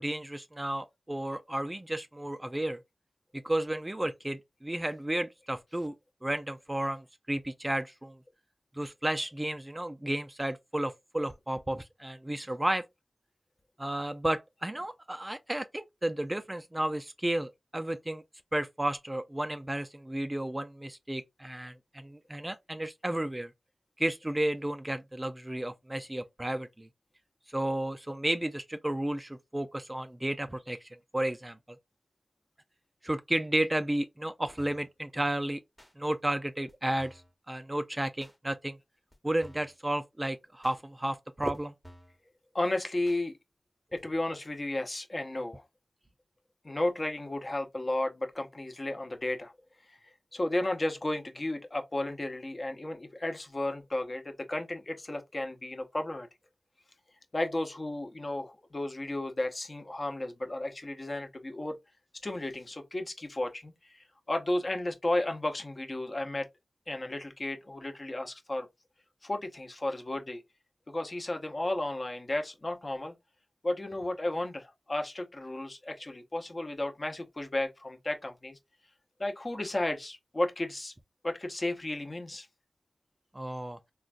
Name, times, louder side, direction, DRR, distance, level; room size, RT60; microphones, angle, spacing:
voice 1, 0.0-2.8 3.4-5.9 6.2-8.2 8.7-12.8 13.8-18.2 18.5-23.5 24.0-26.9 27.5-31.8 33.0-35.6 36.0-37.2 37.5-38.8 39.2-41.7 83.3-83.8, right 1 dB, 20° right, 0.3 m, -32 dB
sound 1, 34.6-34.9 35.8-35.9 36.7-36.8 37.0-37.3 38.2-38.4 39.1-39.2 39.4-39.8 40.6-40.8 41.5-41.6 41.8-42.2 43.0-43.2 44.0-44.1, equal, 5° left, 0.9 m, -53 dB
voice 2, 42.5-43.4 43.9-45.6 46.6-49.5 49.9-50.0 50.3-56.3 57.3-61.8 62.2-66.5 66.9-68.7 69.2-70.4 70.9-73.1 73.6-78.6 79.2-80.9 81.2-82.5, left 1 dB, 40° left, 0.7 m, -33 dB
3.7 x 2.2 x 2.4 m
wide cardioid pair, 75°, 0 cm